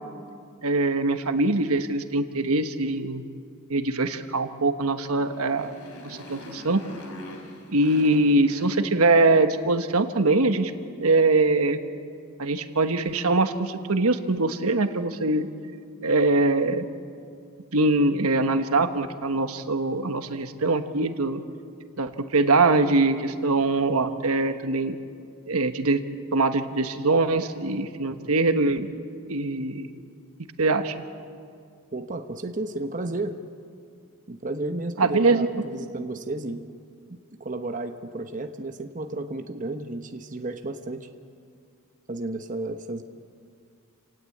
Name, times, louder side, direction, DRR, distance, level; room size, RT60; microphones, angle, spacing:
voice 1, 0.6-3.2 3.7-5.8 6.0-6.8 7.7-10.7 11.0-11.8 12.4-15.5 16.0-16.8 17.7-21.4 22.0-25.0 25.5-26.0 26.3-28.9 29.3-30.0 30.6-30.9 35.0-35.5, right 2 dB, 75° right, 8 dB, 1.3 m, -23 dB
Motorcycle, 4.9-9.5, left 1 dB, 85° left, 3.3 m, -44 dB
voice 2, 31.9-33.4 34.3-36.6 37.1-41.1 42.1-43.0, right 2 dB, 35° right, 6 dB, 1.0 m, -33 dB
29.0 x 18.0 x 8.6 m, 2.3 s
head